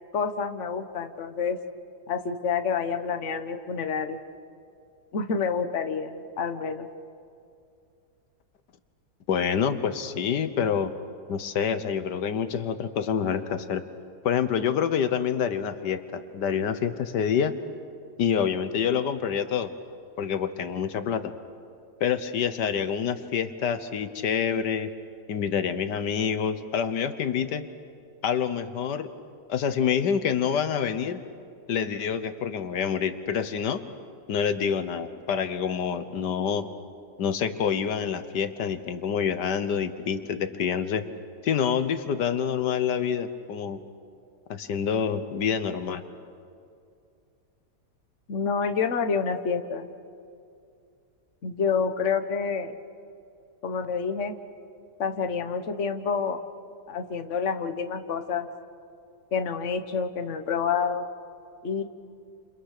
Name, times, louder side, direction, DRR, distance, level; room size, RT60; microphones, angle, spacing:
voice 1, 0.1-1.6 2.1-4.2 5.1-6.9 48.3-49.9 51.4-52.8 53.6-54.3 55.0-56.4 56.9-58.5 59.3-61.1 61.6-61.8, left 6 dB, 45° left, 7 dB, 1.5 m, -28 dB
voice 2, 9.3-10.9 11.3-13.8 14.2-17.5 18.2-19.7 20.2-21.3 22.0-24.9 25.3-27.7 28.2-29.1 29.5-31.2 31.7-33.8 34.3-36.7 37.2-41.0 41.4-43.8 44.5-46.0, left 7 dB, 80° left, 11 dB, 1.6 m, -27 dB
30.0 x 28.5 x 6.7 m, 2.4 s
omnidirectional pair, 1.8 m